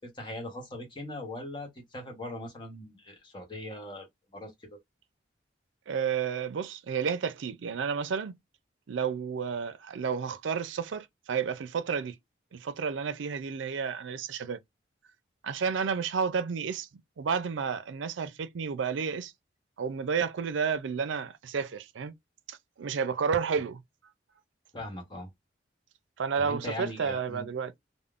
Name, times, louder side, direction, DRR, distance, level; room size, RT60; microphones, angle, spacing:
voice 1, 0.0-4.1 4.3-4.8 24.7-25.3 26.4-27.5, left 1 dB, 25° left, 0.9 m, -40 dB
voice 2, 5.9-8.4 8.9-12.2 12.5-14.6 15.4-16.9 17.2-19.3 19.8-22.1 22.5-23.8 26.2-27.8, right 6 dB, 85° right, 0.4 m, -31 dB
3.5 x 2.0 x 2.4 m
head